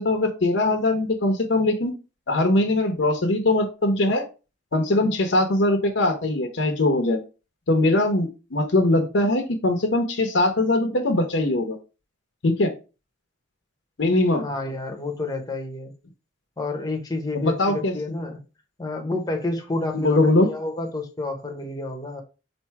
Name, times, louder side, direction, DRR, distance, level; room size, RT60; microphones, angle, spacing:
voice 1, 0.0-1.9 2.3-4.2 4.7-7.2 7.7-11.8 12.4-12.7 14.0-14.4 17.3-17.9 19.9-20.5, left 2 dB, 70° left, 0.8 m, -21 dB
voice 2, 14.3-15.9 16.6-18.4 18.8-22.2, left 2 dB, 20° left, 0.8 m, -29 dB
4.4 x 2.6 x 4.6 m
head